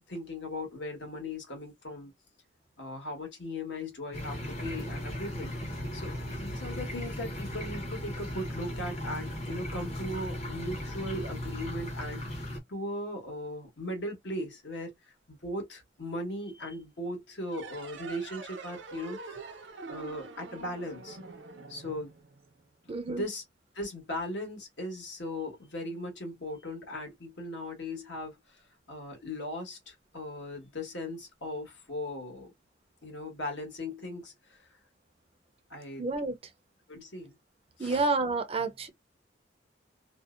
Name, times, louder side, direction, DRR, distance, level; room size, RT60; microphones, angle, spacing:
voice 1, 0.1-2.1 2.8-19.4 19.9-21.2 21.7-22.1 23.1-23.4 23.7-32.5 33.0-34.7 35.7-36.1 36.9-37.3 37.8-38.0, left 1 dB, 70° left, 1.2 m, -38 dB
sound 1, 4.1-12.6, left 1 dB, 35° left, 0.8 m, -37 dB
sound 2, 17.5-22.7, right 4 dB, 80° right, 0.6 m, -45 dB
voice 2, 22.9-23.3 36.0-36.4 37.8-38.9, right 3 dB, 35° right, 0.5 m, -29 dB
2.6 x 2.0 x 2.4 m
head